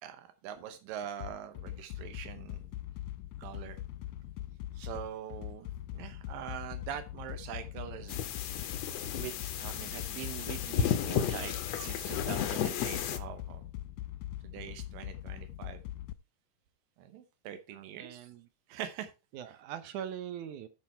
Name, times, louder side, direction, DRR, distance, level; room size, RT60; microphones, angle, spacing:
voice 1, 0.0-2.6 3.4-3.8 4.7-8.2 9.1-13.6 14.4-15.8 17.0-18.3 18.7-19.1 19.5-19.6, right 10 dB, 90° right, 2.7 m, -43 dB
sound 1, 1.2-16.1, left 13 dB, 90° left, 2.3 m, -42 dB
sound 2, 8.1-13.2, left 8 dB, 65° left, 1.8 m, -33 dB
voice 2, 17.7-18.5 19.3-20.7, right 9 dB, 70° right, 2.2 m, -42 dB
12.5 x 5.4 x 4.4 m
omnidirectional pair, 3.9 m